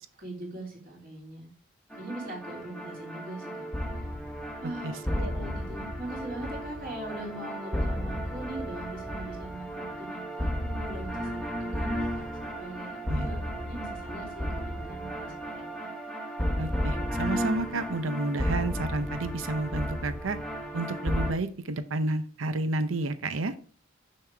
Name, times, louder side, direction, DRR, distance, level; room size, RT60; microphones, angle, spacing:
voice 1, 0.2-1.5 2.0-3.7 4.0-4.1 4.6-12.2 12.6-15.9, right 1 dB, 45° right, -2 dB, 3.0 m, -41 dB
sound 1, 1.9-21.3, equal, 5° left, 1.0 m, -33 dB
voice 2, 4.8-5.3 13.1-13.3 16.6-20.4 20.7-23.5, right 2 dB, 75° right, 11 dB, 0.7 m, -31 dB
6.9 x 6.6 x 3.4 m, 0.41 s
head